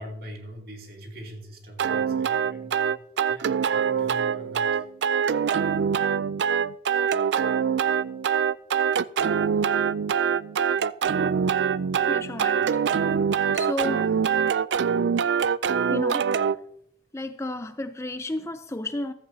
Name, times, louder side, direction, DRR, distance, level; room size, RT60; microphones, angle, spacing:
voice 1, 0.0-3.0 3.3-4.8, equal, 55° right, 2.7 m, -42 dB
sound 1, 1.8-16.6, right 7 dB, 75° right, 0.4 m, -24 dB
voice 2, 12.1-12.9 13.5-14.1 15.9-16.3 17.1-19.1, left 1 dB, 15° left, 0.4 m, -32 dB
15.0 x 14.0 x 2.7 m
head